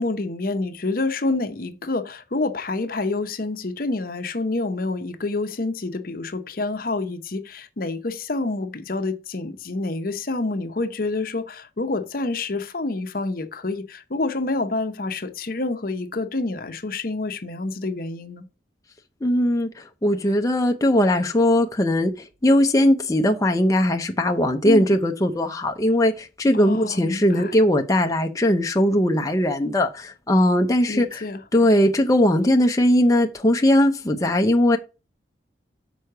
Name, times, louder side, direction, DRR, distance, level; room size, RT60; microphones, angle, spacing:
voice 1, 0.0-18.4 24.6-25.0 26.5-27.5 30.9-31.4, left 2 dB, 55° left, 0.8 m, -28 dB
voice 2, 19.2-31.2 31.5-34.8, left 1 dB, 20° left, 0.7 m, -19 dB
6.3 x 4.7 x 6.5 m
head